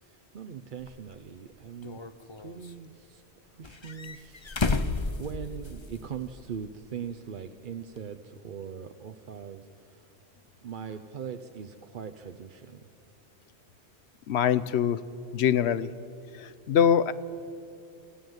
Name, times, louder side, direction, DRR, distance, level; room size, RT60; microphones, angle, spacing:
voice 1, 0.0-2.0 2.4-3.2 3.6-10.1 10.6-12.9, right 7 dB, 55° right, 7 dB, 0.8 m, -41 dB
sound 1, 0.8-0.9 1.8-2.7 3.6-6.0 6.3-6.4 8.0-8.1, left 3 dB, 30° left, 0.7 m, -31 dB
voice 2, 14.3-15.0 15.3-15.9 16.4-17.1, left 8 dB, 75° left, 16 dB, 1.0 m, -23 dB
26.5 x 14.5 x 8.0 m, 2.7 s
omnidirectional pair, 1.1 m